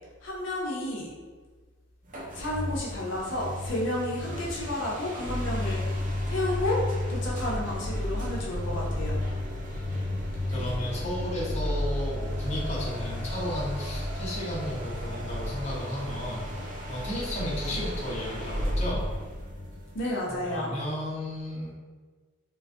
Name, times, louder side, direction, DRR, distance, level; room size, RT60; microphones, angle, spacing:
voice 1, 0.2-1.1 2.3-6.0 6.3-6.8 7.1-9.2 17.7-17.9 19.9-20.7, left 1 dB, 75° left, -4 dB, 0.6 m, -31 dB
sound 1, 2.1-20.6, left 1 dB, 40° right, 0.5 m, -32 dB
voice 2, 10.5-16.4 16.9-19.0 20.0-21.7, left 1 dB, 35° left, -6 dB, 0.8 m, -34 dB
3.8 x 2.4 x 2.5 m, 1.4 s
head